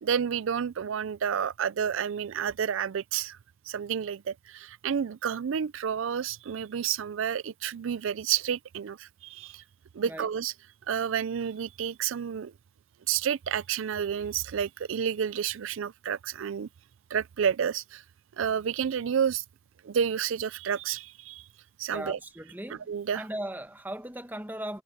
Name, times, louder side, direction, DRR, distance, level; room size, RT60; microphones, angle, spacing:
voice 1, 0.0-3.4 3.7-9.6 9.9-10.5 10.9-12.5 13.1-16.7 17.1-18.0 18.4-19.4 19.8-21.4 21.8-22.2 22.9-23.2, right 8 dB, 75° right, 0.4 m, -30 dB
voice 2, 21.9-22.9 23.1-24.8, right 1 dB, 10° right, 1.1 m, -37 dB
head